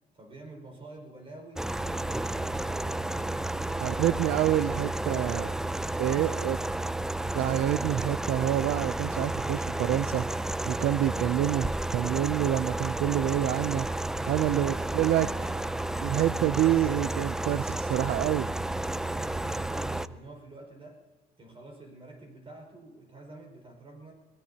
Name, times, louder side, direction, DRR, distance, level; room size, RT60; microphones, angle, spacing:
voice 1, 0.1-3.4 3.8-4.6 14.5-15.7 18.8-21.0 21.4-24.1, right 2 dB, 30° right, 3 dB, 5.2 m, -48 dB
sound 1, 1.6-20.1, right 2 dB, 5° right, 0.4 m, -32 dB
voice 2, 3.8-5.5 6.0-6.6 7.3-10.4 10.7-15.5 16.0-18.5, right 13 dB, 70° right, 14 dB, 0.5 m, -27 dB
22.5 x 19.0 x 2.8 m, 1.3 s
cardioid pair, 110°, 17 cm